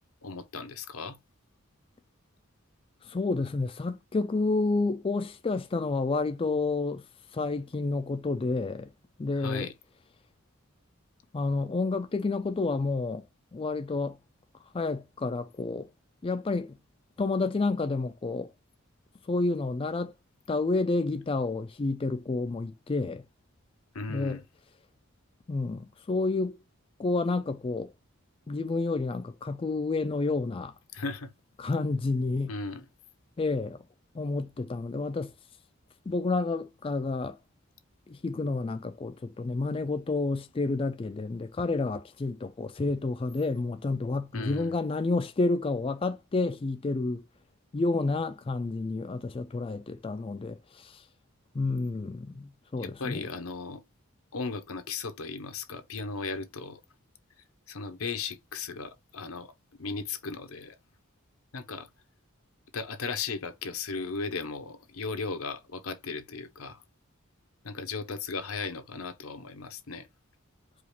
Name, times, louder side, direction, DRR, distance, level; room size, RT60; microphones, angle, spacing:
voice 1, 0.2-1.2 9.4-9.7 23.9-24.4 30.9-31.3 32.5-32.8 44.3-44.7 52.8-53.8 54.3-56.8 57.7-59.5 59.8-60.8 61.5-61.9 62.7-66.8 67.6-70.1, left 4 dB, 85° left, 0.9 m, -36 dB
voice 2, 3.0-7.0 7.3-8.9 9.2-9.7 11.3-13.3 13.5-14.2 14.7-15.9 16.2-16.8 17.2-18.5 19.3-20.1 20.5-23.2 24.1-24.4 25.5-26.6 27.0-27.9 28.5-30.7 31.6-32.5 33.4-33.8 34.1-35.3 36.1-37.4 38.1-47.2 47.7-51.0 51.5-53.2, left 3 dB, 25° left, 0.3 m, -30 dB
4.8 x 2.4 x 3.3 m
head